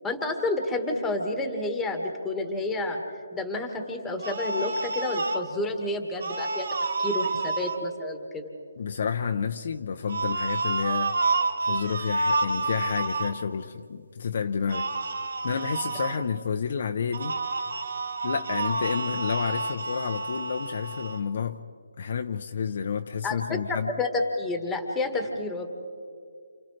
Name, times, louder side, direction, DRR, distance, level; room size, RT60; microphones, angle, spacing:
voice 1, 0.0-3.0 3.3-6.7 7.0-8.5 23.2-25.7, left 2 dB, 5° left, 1.6 m, -30 dB
sound 1, 4.2-5.4 6.2-7.8 10.1-13.3 14.7-16.2 17.1-21.2, right 3 dB, 65° right, 1.7 m, -29 dB
voice 2, 8.8-11.2 11.6-14.9 15.4-17.4 18.2-21.6 22.0-23.9, left 6 dB, 45° left, 0.6 m, -30 dB
29.0 x 28.5 x 3.3 m
hypercardioid pair, 165°, 0 cm